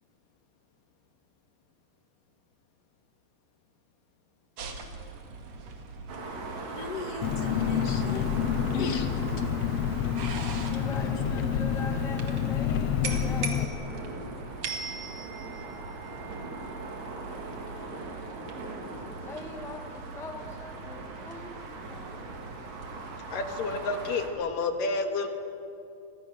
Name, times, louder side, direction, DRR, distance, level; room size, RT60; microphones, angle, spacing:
sound 1, 4.6-24.2, right 4 dB, 55° right, 3.0 m, -42 dB
sound 2, 6.1-24.3, right 3 dB, 85° right, 4.2 m, -41 dB
voice 1, 6.8-8.3 8.7-9.1, left 5 dB, 50° left, 5 dB, 2.7 m, -35 dB
Engine, 7.2-13.7, left 8 dB, 65° left, 1.8 m, -28 dB
voice 2, 10.7-13.9 19.1-22.2, left 2 dB, ahead, 3 dB, 1.2 m, -42 dB
voice 3, 23.3-25.3, left 3 dB, 85° left, 5 dB, 3.5 m, -30 dB
30.0 x 24.5 x 6.5 m, 2.6 s
omnidirectional pair, 3.8 m